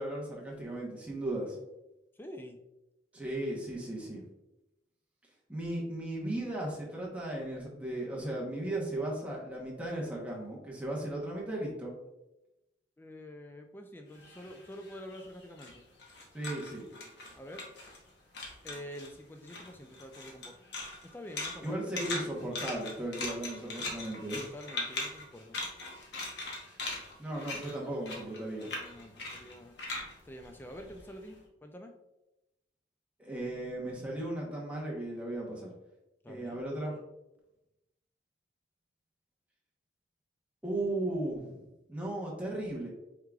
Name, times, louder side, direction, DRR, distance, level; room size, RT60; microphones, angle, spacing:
voice 1, 0.0-1.6 3.1-4.2 5.5-11.9 16.3-16.9 21.6-24.4 27.2-28.7 33.2-35.7 36.3-37.0 40.6-41.6 41.9-42.9, right 1 dB, 5° right, -4 dB, 0.9 m, -36 dB
voice 2, 2.2-2.6 13.0-15.9 17.4-17.6 18.6-20.5 21.1-21.8 24.4-25.6 28.6-29.8 30.2-31.9 36.2-36.6, equal, 10° left, 4 dB, 0.3 m, -47 dB
sound 1, 14.1-18.1 18.3-19.1 19.4-31.3, left 2 dB, 60° left, 0.9 m, -40 dB
4.7 x 3.6 x 2.3 m, 0.95 s
head